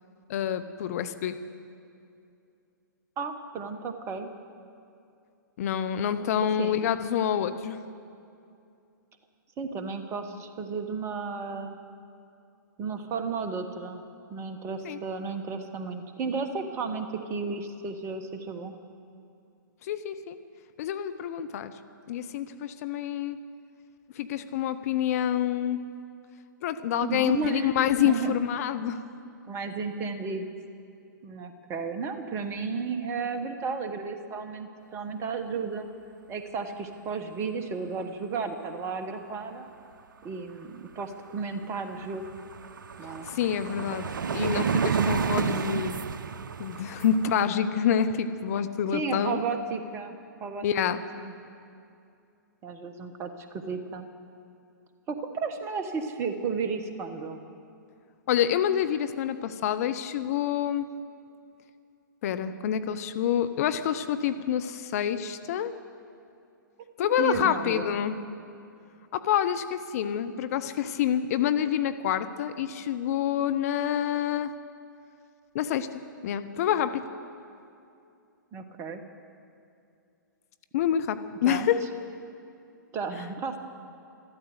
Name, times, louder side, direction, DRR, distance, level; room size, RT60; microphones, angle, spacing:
voice 1, 0.3-1.4 5.6-7.8 14.8-15.0 19.8-20.4 20.8-21.7 22.1-23.4 24.2-25.8 26.6-29.0 43.3-46.0 46.6-49.4 50.6-51.0 58.3-60.9 62.2-65.7 67.0-68.2 69.1-74.5 75.5-75.9 76.2-77.0 80.7-81.8, left 9 dB, 45° left, 11 dB, 0.8 m, -27 dB
voice 2, 3.2-4.3 6.6-6.9 9.6-11.7 12.8-14.0 14.3-18.7 27.0-27.7 28.0-28.4 29.5-30.5 31.2-35.9 36.3-39.7 40.2-42.3 43.0-43.3 48.9-50.1 50.4-50.6 51.2-51.3 52.6-54.1 55.1-57.4 67.2-67.9 78.5-79.0 81.4-81.7 82.9-83.6, right 5 dB, 25° right, 7 dB, 1.3 m, -33 dB
sound 1, 41.4-41.5 41.8-47.5, right 6 dB, 70° right, 0.6 m, -30 dB
13.0 x 13.0 x 8.1 m, 2.6 s
figure-of-eight pair, 120°, 11 cm